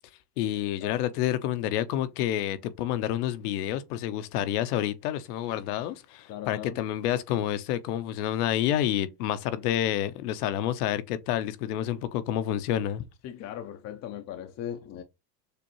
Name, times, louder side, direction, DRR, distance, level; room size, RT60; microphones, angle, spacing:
voice 1, 0.4-13.0, left 11 dB, 65° left, 0.9 m, -29 dB
voice 2, 6.3-6.8 13.2-15.0, left 10 dB, 35° left, 0.6 m, -38 dB
6.7 x 2.6 x 3.0 m
supercardioid pair, 120°, 49 cm